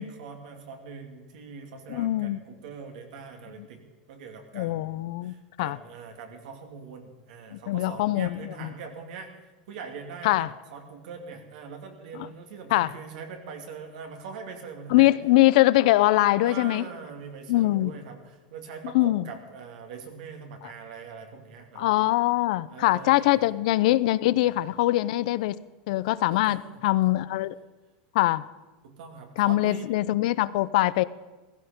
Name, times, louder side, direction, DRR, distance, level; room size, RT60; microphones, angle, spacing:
voice 1, 0.0-3.8 4.1-9.3 9.7-15.1 16.4-21.9 22.7-23.5 24.4-24.5 26.3-27.2 28.8-29.9, right 5 dB, 75° right, 2.7 m, -42 dB
voice 2, 1.9-2.4 4.5-5.8 7.5-8.7 10.2-10.5 12.7-12.9 14.9-16.8 17.5-17.9 18.9-19.2 21.8-25.6 25.9-27.5 28.1-28.4 29.4-31.0, left 17 dB, 70° left, 0.6 m, -23 dB
15.5 x 15.5 x 5.2 m
supercardioid pair, 135°, 4 cm